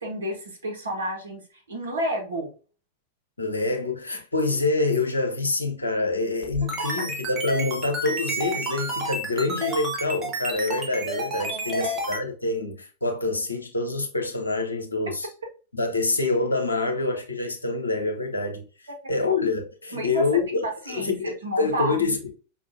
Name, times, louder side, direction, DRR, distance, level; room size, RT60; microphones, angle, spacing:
voice 1, 0.0-1.4 1.7-2.5 11.4-12.0 19.9-22.0, right 1 dB, 70° right, 1.1 m, -31 dB
voice 2, 3.4-15.3 15.7-18.6 19.1-22.3, left 3 dB, 80° left, 0.7 m, -26 dB
sound 1, 6.4-12.2, right 1 dB, 25° right, 1.1 m, -30 dB
5.2 x 2.4 x 2.6 m
figure-of-eight pair, 90°, 0 cm